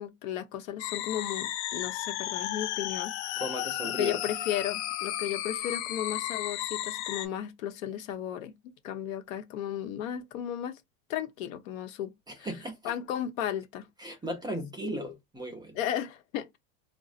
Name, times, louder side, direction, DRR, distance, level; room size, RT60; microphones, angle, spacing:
voice 1, 0.0-3.4 3.8-10.8 11.1-12.1 12.4-12.5 12.8-13.9 14.8-15.0 15.7-16.6, left 11 dB, 70° left, 0.9 m, -35 dB
sound 1, 0.8-7.3, left 13 dB, 55° left, 0.5 m, -34 dB
voice 2, 3.4-4.2 12.3-12.9 14.0-15.8, right 1 dB, 10° right, 0.5 m, -37 dB
3.8 x 2.1 x 2.4 m
supercardioid pair, 130°, 41 cm